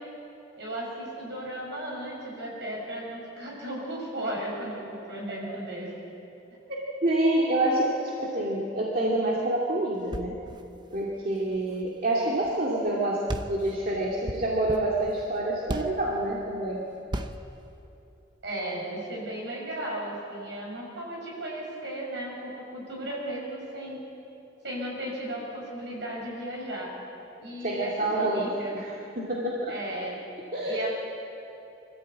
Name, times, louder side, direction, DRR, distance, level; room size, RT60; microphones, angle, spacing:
voice 1, 0.6-5.9 18.4-24.0 24.6-26.9 27.4-28.7 29.7-30.1 30.6-30.9, right 1 dB, 60° right, -3 dB, 6.9 m, -35 dB
voice 2, 7.0-10.3 10.9-16.8 27.6-29.7 30.5-30.9, right 1 dB, 45° right, -4 dB, 2.4 m, -27 dB
sound 1, 10.0-12.6 12.8-13.0 13.3-16.1 17.1-17.6, right 1 dB, 20° right, 0.7 m, -37 dB
24.5 x 14.5 x 8.6 m, 2.9 s
head